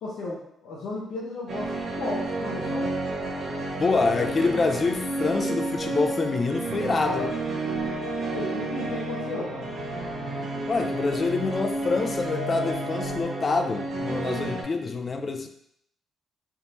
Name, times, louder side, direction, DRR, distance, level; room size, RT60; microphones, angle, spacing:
voice 1, 0.0-2.9 7.0-7.3 8.3-9.7, left 2 dB, 80° left, -5 dB, 0.7 m, -34 dB
sound 1, 1.5-14.6, right 2 dB, 60° right, 0.8 m, -31 dB
voice 2, 3.8-7.4 10.7-15.5, left 4 dB, 35° left, 6 dB, 0.4 m, -26 dB
3.5 x 2.7 x 3.0 m, 0.73 s
cardioid pair, 90°, 0 cm